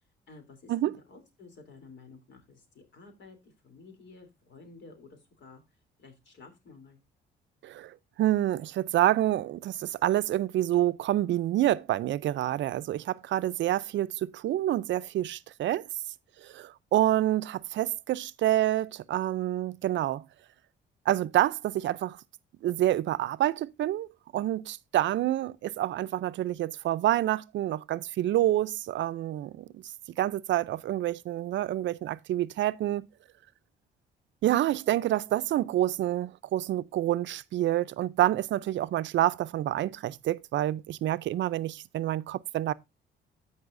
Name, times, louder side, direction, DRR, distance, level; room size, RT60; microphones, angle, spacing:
voice 1, 0.3-5.6 6.0-7.0, left 3 dB, 65° left, 3.2 m, -52 dB
voice 2, 7.6-15.9 16.4-20.2 21.1-22.2 22.6-24.1 24.3-29.8 30.2-33.1 34.4-42.7, right 13 dB, 70° right, 0.5 m, -28 dB
13.5 x 5.5 x 2.5 m
cardioid pair, 90°, 20 cm